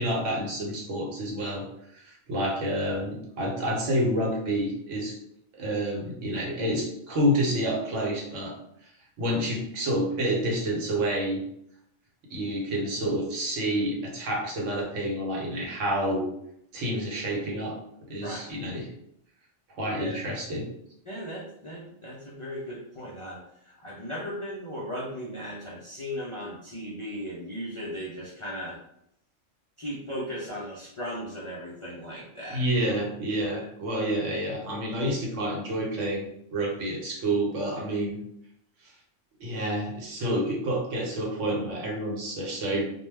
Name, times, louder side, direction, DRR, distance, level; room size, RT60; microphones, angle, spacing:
voice 1, 0.0-1.6 1.9-5.2 5.5-8.5 9.2-11.4 12.3-16.3 16.7-17.7 18.1-18.9 19.8-20.7 32.5-36.2 36.5-38.2 39.4-42.9, right 1 dB, 75° right, -1 dB, 1.1 m, -28 dB
voice 2, 18.2-18.5 19.9-20.2 21.1-28.8 29.8-32.6 33.5-33.6, equal, 55° left, -5 dB, 0.3 m, -37 dB
2.3 x 2.1 x 3.2 m, 0.75 s
omnidirectional pair, 1.3 m